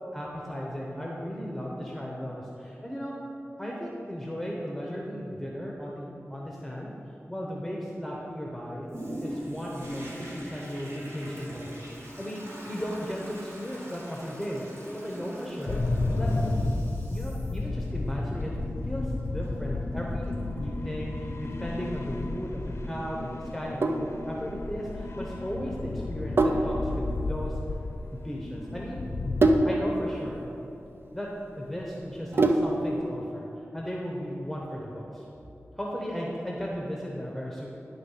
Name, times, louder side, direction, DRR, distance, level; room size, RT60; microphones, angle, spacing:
voice 1, 0.1-3.2 3.6-7.0 7.3-8.9 9.2-14.7 14.9-15.8 16.1-16.3 17.1-18.5 18.8-27.6 28.1-29.0 29.6-30.4 31.1-33.5 33.7-35.2 35.8-37.7, equal, ahead, -3 dB, 0.9 m, -36 dB
Toilet flush, 8.9-21.3 21.9-22.0, equal, 75° right, 1.5 m, -43 dB
sound 1, 15.7-29.5, left 2 dB, 70° left, 0.6 m, -32 dB
Sink (filling or washing), 23.5-33.0, right 2 dB, 50° right, 0.5 m, -28 dB
10.5 x 3.7 x 5.6 m, 2.9 s
wide cardioid pair, 75°, 5 cm